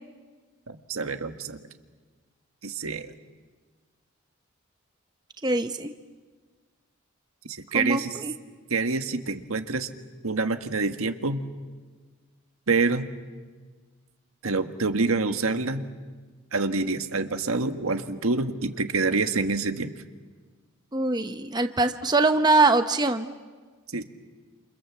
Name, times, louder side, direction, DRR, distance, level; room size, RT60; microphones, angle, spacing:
voice 1, 0.7-1.6 2.6-3.1 7.5-8.2 8.7-9.9 10.2-11.4 12.7-13.1 14.4-15.8 16.5-19.9 23.9-24.0, right 3 dB, 90° right, 7 dB, 1.6 m, -26 dB
voice 2, 5.4-5.9 7.7-8.3 20.9-23.3, right 2 dB, 20° right, 8 dB, 0.9 m, -23 dB
28.5 x 28.0 x 7.4 m, 1.4 s
head